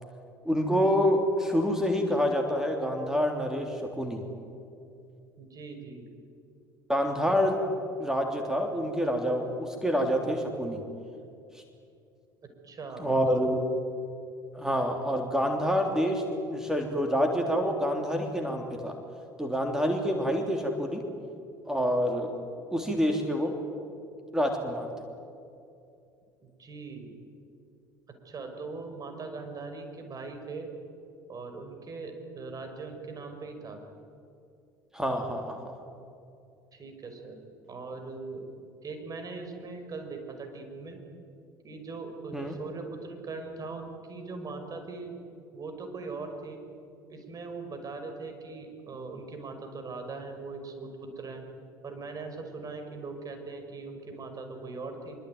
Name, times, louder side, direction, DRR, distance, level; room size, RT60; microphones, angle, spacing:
voice 1, 0.4-4.2 6.9-7.6 8.0-10.8 11.5-11.6 13.0-13.6 14.5-18.9 19.4-21.0 21.7-22.3 22.7-23.5 24.3-24.9 34.9-35.7 42.3-42.5, equal, 5° right, 3 dB, 3.3 m, -27 dB
voice 2, 5.4-6.0 12.6-13.5 26.6-27.1 28.2-30.7 31.3-33.8 36.7-37.4 37.7-38.4 38.8-41.0 41.6-45.1 45.5-46.6 47.1-51.4 51.8-55.2, right 3 dB, 35° right, 5 dB, 5.6 m, -40 dB
24.5 x 23.5 x 9.3 m, 2.5 s
figure-of-eight pair, 60°, 11 cm